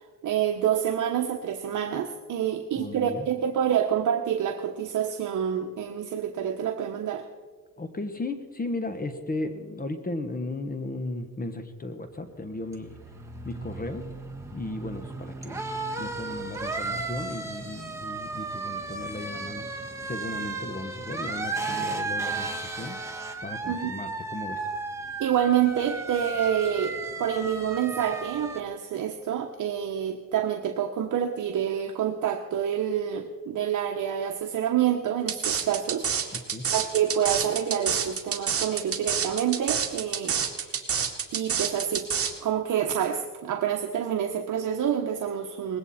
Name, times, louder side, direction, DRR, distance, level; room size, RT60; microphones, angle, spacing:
voice 1, 0.2-7.3 23.7-23.9 25.2-36.4 36.7-40.7 41.3-42.1 42.4-45.8, right 9 dB, 60° right, 4 dB, 1.1 m, -27 dB
voice 2, 2.7-3.3 7.8-13.0 13.4-14.1 14.5-15.6 16.0-23.0 23.4-24.7 36.3-36.7, left 2 dB, 25° left, 8 dB, 1.3 m, -35 dB
sound 1, 12.2-28.6, right 3 dB, 10° right, 1.7 m, -35 dB
sound 2, 35.3-42.3, right 7 dB, 40° right, 2.0 m, -27 dB
20.0 x 16.5 x 4.3 m, 1.4 s
cardioid pair, 110°, 34 cm